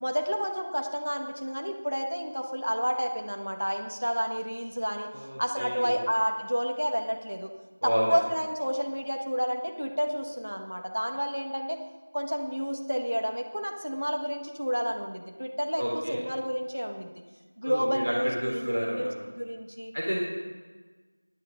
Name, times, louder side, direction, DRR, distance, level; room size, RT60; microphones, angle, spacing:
voice 1, 0.0-7.5 7.8-11.8 12.1-15.8 16.1-17.1 17.6-19.9, equal, 80° right, 4 dB, 1.6 m, -30 dB
voice 2, 5.1-5.9 7.8-8.1 15.8-16.2 17.6-18.1 18.4-19.1 19.9-20.2, equal, 60° right, -4 dB, 3.6 m, -30 dB
21.0 x 9.2 x 3.8 m, 1.3 s
figure-of-eight pair, 180°, 0 cm